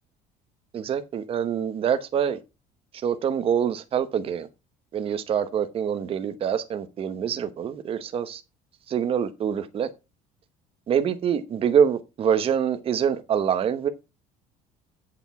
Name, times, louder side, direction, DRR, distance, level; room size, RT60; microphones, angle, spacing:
voice 1, 0.7-2.4 3.0-4.5 4.9-8.4 8.9-9.9 10.9-13.9, right 8 dB, 40° right, 1.0 m, -25 dB
8.4 x 6.9 x 5.8 m
cardioid pair, 130°, 15 cm